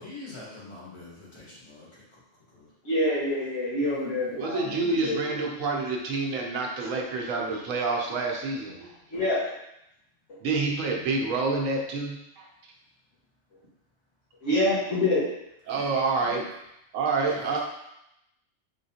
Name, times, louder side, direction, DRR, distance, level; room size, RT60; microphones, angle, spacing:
voice 1, 0.0-2.2 2.5-2.7 3.8-3.9 11.2-11.4 15.7-16.4 17.3-17.6, left 2 dB, 25° left, -8 dB, 1.3 m, -45 dB
voice 2, 2.8-5.5 9.1-9.4 14.4-15.2, left 1 dB, 70° left, -9 dB, 1.8 m, -26 dB
voice 3, 4.4-8.9 10.4-12.5 15.7-16.4 16.9-17.6, right 3 dB, 85° right, 0 dB, 1.1 m, -28 dB
3.7 x 3.6 x 2.8 m, 0.83 s
omnidirectional pair, 1.3 m